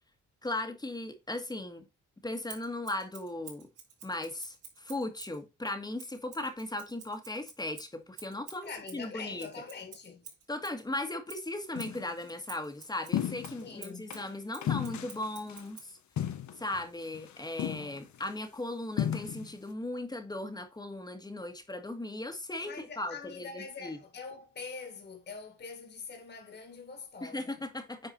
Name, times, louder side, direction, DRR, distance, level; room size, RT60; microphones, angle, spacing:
voice 1, 0.4-1.8 2.2-3.7 4.0-9.5 10.5-16.0 16.6-24.0 27.2-28.1, left 2 dB, 10° left, 1.7 m, -37 dB
Scissors, 2.5-5.4 6.0-10.8 11.3-15.9, right 7 dB, 75° right, 4.4 m, -50 dB
voice 2, 8.6-10.3 13.6-14.1 22.6-27.6, left 5 dB, 35° left, 2.1 m, -44 dB
sound 1, 11.8-12.1 13.1-13.7 14.1-14.3 14.6-15.6 16.2-16.8 17.1-17.3 17.6-18.3 19.0-19.5, left 10 dB, 65° left, 1.3 m, -34 dB
9.4 x 4.7 x 4.2 m
cardioid pair, 130°, 32 cm